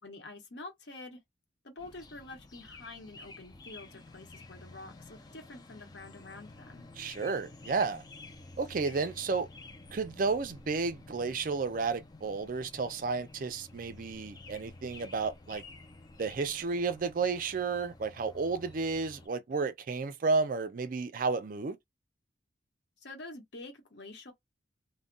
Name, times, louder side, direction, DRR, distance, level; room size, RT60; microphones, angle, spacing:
voice 1, 0.0-1.2 1.6-6.9 23.0-24.3, left 2 dB, 65° left, 1.0 m, -47 dB
sound 1, 1.8-19.3, left 2 dB, 20° left, 0.4 m, -51 dB
voice 2, 7.0-8.0 8.6-9.5 9.9-15.6 16.2-21.8, right 4 dB, 45° right, 0.4 m, -32 dB
2.2 x 2.1 x 3.7 m
head